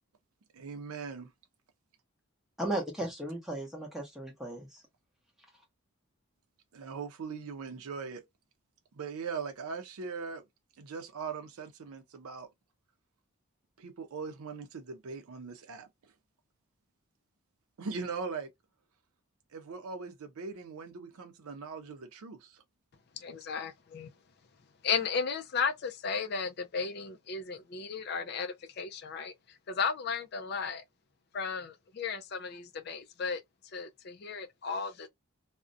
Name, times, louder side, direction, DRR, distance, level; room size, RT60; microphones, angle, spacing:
voice 1, 0.5-1.3 6.7-8.2 8.9-10.4 10.8-12.5 13.8-15.9 17.8-18.5 19.5-22.6, right 5 dB, 85° right, 0.5 m, -40 dB
voice 2, 2.6-4.8, right 1 dB, ahead, 0.7 m, -36 dB
voice 3, 23.2-24.1 24.8-30.8 31.3-35.1, left 5 dB, 45° left, 0.3 m, -35 dB
2.4 x 2.1 x 2.5 m
head